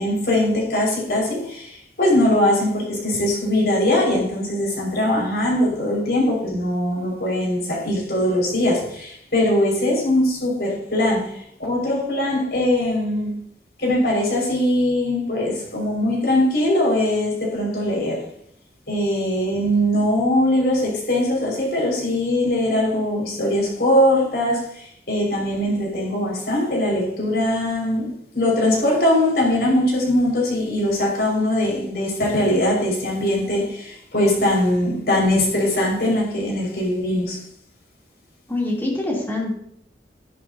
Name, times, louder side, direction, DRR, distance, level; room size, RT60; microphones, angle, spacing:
voice 1, 0.0-13.3 13.8-18.2 18.9-37.4, left 1 dB, 65° left, -2 dB, 5.5 m, -21 dB
voice 2, 38.5-39.5, left 2 dB, 15° left, -4 dB, 3.1 m, -24 dB
13.5 x 11.0 x 2.8 m, 0.67 s
head